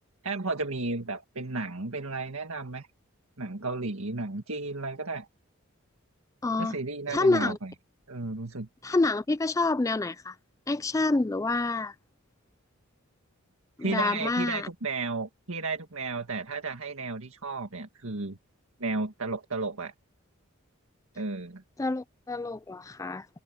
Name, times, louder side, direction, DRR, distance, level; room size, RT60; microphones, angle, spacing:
voice 1, 0.2-2.9 3.4-5.3 6.6-7.7 8.1-8.7 13.8-18.4 18.8-19.9 21.2-21.6, right 3 dB, 75° right, 1.9 m, -33 dB
voice 2, 6.4-6.8 7.1-7.6 8.8-10.4 10.7-11.9 13.8-14.7 21.8-23.3, left 2 dB, 15° left, 0.3 m, -27 dB
head